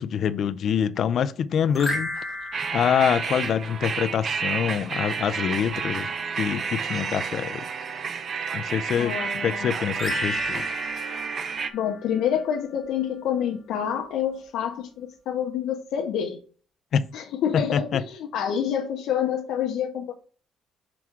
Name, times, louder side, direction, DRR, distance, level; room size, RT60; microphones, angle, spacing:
voice 1, 0.0-2.2 2.7-6.1 6.4-7.6 8.5-9.1 9.4-10.6 16.9-17.0 17.5-18.0, left 8 dB, 45° left, 0.4 m, -25 dB
Xylophon - Glissando hoch, 1.7-4.2 9.9-12.5, left 1 dB, 5° left, 1.4 m, -34 dB
sound 1, 2.5-11.7, right 6 dB, 35° right, 0.5 m, -30 dB
voice 2, 9.0-9.7 11.7-16.4 17.1-20.1, left 9 dB, 80° left, 0.7 m, -27 dB
6.0 x 3.6 x 4.6 m
cardioid pair, 175°, 0 cm